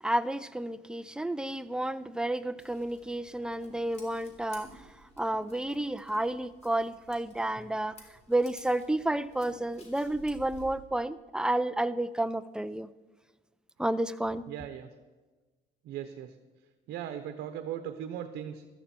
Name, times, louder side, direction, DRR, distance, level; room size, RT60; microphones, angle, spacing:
voice 1, 0.0-8.0 8.3-12.9 13.8-14.4, right 1 dB, 5° right, 13 dB, 0.5 m, -31 dB
Scissors, 2.6-10.8, left 1 dB, 40° left, 3.4 m, -54 dB
voice 2, 14.5-14.9 15.8-16.3 16.9-18.6, right 10 dB, 80° right, 7 dB, 1.0 m, -38 dB
14.5 x 13.5 x 4.4 m, 1.2 s
cardioid pair, 110°, 17 cm